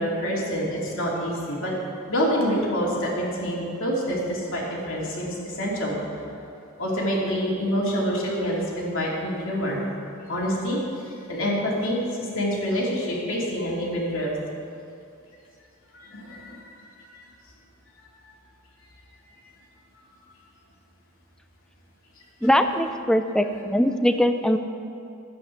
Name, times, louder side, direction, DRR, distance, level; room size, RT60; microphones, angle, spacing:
voice 1, 0.0-1.7 2.1-6.4 6.8-14.3 15.9-16.7 17.1-17.3 18.2-18.3, equal, 65° left, -4 dB, 3.0 m, -27 dB
voice 2, 22.4-24.6, equal, 5° left, 8 dB, 0.5 m, -21 dB
13.0 x 9.4 x 6.5 m, 2.5 s
head